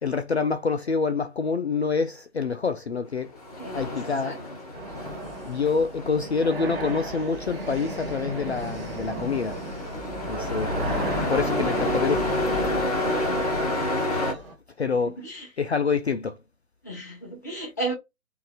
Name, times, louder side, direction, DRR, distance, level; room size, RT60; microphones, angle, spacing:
voice 1, 0.0-3.3 3.7-4.4 5.4-9.6 10.3-12.3 14.1-14.5 14.8-15.2 15.6-16.4, left 5 dB, 55° left, 0.5 m, -27 dB
Truck, 3.2-14.3, left 1 dB, 30° left, 1.0 m, -30 dB
voice 2, 3.6-4.4 13.2-13.8 15.0-15.5 16.8-17.9, right 2 dB, 15° left, 0.7 m, -35 dB
sound 1, 4.7-14.5, right 2 dB, 45° right, 1.2 m, -34 dB
4.6 x 2.6 x 2.3 m
figure-of-eight pair, 145°, 41 cm